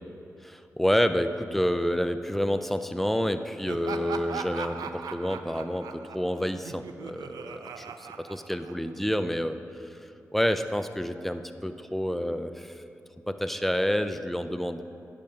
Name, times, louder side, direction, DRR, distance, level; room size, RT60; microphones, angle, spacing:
voice 1, 0.4-9.6 10.3-12.8 13.3-14.8, equal, 5° left, 9 dB, 0.5 m, -28 dB
Laughter, 3.7-9.1, right 6 dB, 80° right, 0.4 m, -39 dB
10.5 x 5.1 x 5.4 m, 2.8 s
supercardioid pair, 40°, 6 cm